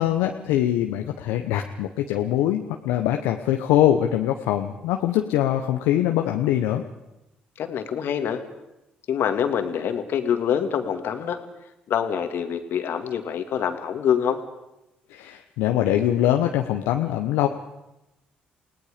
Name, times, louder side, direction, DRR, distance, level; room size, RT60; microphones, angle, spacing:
voice 1, 0.0-6.8 15.1-17.5, left 12 dB, 80° left, 4 dB, 1.0 m, -23 dB
voice 2, 7.6-8.4 9.1-11.4 11.9-14.4, left 8 dB, 65° left, 7 dB, 2.1 m, -25 dB
29.5 x 18.0 x 5.1 m, 0.91 s
hypercardioid pair, 55°, 4 cm